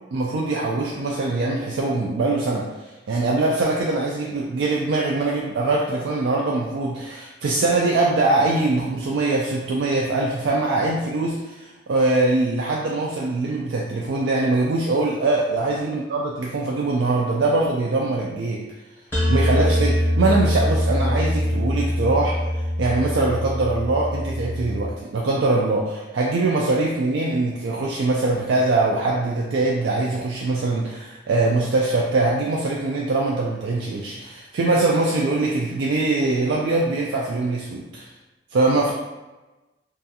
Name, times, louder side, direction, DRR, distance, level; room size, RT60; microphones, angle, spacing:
voice 1, 0.1-2.7 3.1-18.6 19.3-38.1 38.5-38.9, right 2 dB, 65° right, -3 dB, 0.3 m, -22 dB
sound 1, 19.1-24.9, equal, 10° left, 0.7 m, -23 dB
2.4 x 2.3 x 2.7 m, 1.1 s
head